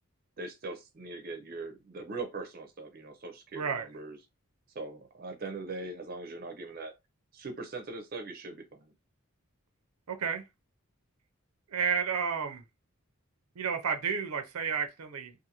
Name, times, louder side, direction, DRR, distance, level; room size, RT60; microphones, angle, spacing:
voice 1, 0.4-4.2 4.7-6.9 7.3-8.9, right 3 dB, 45° right, 0.5 m, -41 dB
voice 2, 3.5-3.9 10.1-10.4 11.7-12.6 13.6-15.3, right 6 dB, 90° right, 0.5 m, -31 dB
2.5 x 2.5 x 2.8 m
head